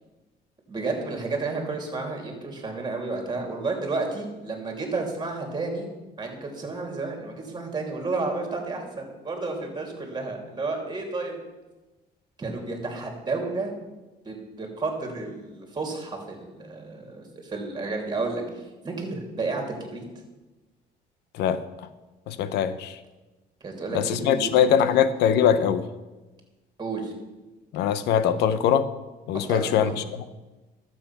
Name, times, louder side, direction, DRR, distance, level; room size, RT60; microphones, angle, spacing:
voice 1, 0.7-5.9 6.2-11.4 12.4-13.7 14.2-20.0 23.6-24.7 26.8-27.1 29.3-29.9, right 3 dB, 25° right, 2 dB, 3.0 m, -31 dB
voice 2, 22.3-23.0 23.9-25.8 27.7-28.9 29.3-30.0, left 8 dB, 85° left, 13 dB, 0.8 m, -22 dB
12.0 x 7.7 x 5.9 m, 1.1 s
cardioid pair, 110°, 17 cm